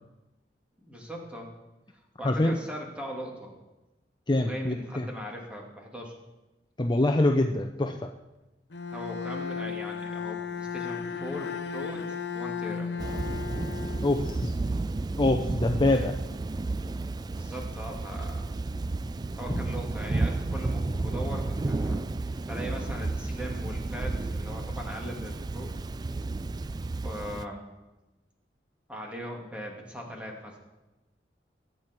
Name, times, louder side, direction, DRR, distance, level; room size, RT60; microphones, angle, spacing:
voice 1, 0.8-1.5 2.2-3.5 4.3-6.2 8.9-12.9 17.3-18.6 19.4-22.0 22.5-25.7 27.0-27.6 28.9-30.6, equal, 5° right, -1 dB, 2.6 m, -39 dB
voice 2, 2.2-2.6 4.3-5.1 6.8-8.0 14.0-14.5 15.2-16.2 19.5-19.6, left 2 dB, 25° left, 4 dB, 0.7 m, -25 dB
Bowed string instrument, 8.7-14.7, left 6 dB, 70° left, 0.8 m, -35 dB
Thunder / Rain, 13.0-27.4, right 2 dB, 25° right, 0.3 m, -32 dB
22.0 x 9.2 x 4.6 m, 1.0 s
head